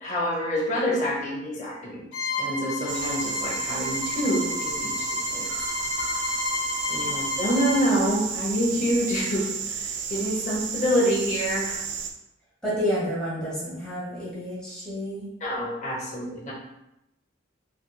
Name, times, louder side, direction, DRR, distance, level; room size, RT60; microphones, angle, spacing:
voice 1, 0.0-2.1 2.4-5.5 6.9-11.8 15.4-16.5, equal, 40° left, -4 dB, 0.8 m, -27 dB
Bowed string instrument, 2.1-7.9, left 4 dB, 85° left, 0.8 m, -31 dB
sound 1, 2.9-12.1, right 6 dB, 65° right, 0.4 m, -32 dB
voice 2, 12.6-15.3, equal, 5° left, -9 dB, 1.2 m, -29 dB
3.3 x 2.9 x 2.3 m, 0.87 s
head